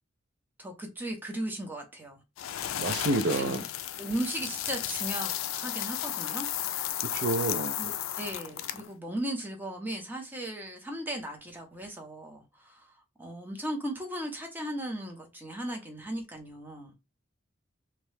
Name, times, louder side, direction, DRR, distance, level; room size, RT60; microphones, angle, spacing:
voice 1, 0.6-2.2 3.3-3.6 4.0-6.8 7.8-16.9, right 1 dB, 10° right, 0.7 m, -37 dB
sound 1, 2.4-8.9, left 11 dB, 90° left, 0.3 m, -34 dB
voice 2, 2.7-3.6 7.0-7.8, right 2 dB, 55° right, 0.4 m, -29 dB
2.9 x 2.1 x 3.2 m
head